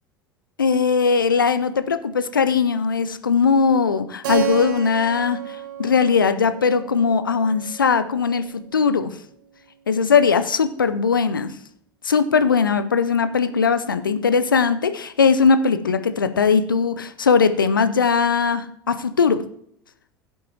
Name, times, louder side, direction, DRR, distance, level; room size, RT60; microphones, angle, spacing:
voice 1, 0.6-5.4 5.8-9.1 9.9-11.5 12.0-19.4, left 5 dB, 80° left, 12 dB, 0.7 m, -19 dB
Keyboard (musical), 4.2-8.8, right 8 dB, 65° right, 1.7 m, -31 dB
16.0 x 8.3 x 2.9 m, 0.67 s
figure-of-eight pair, 70°, 11 cm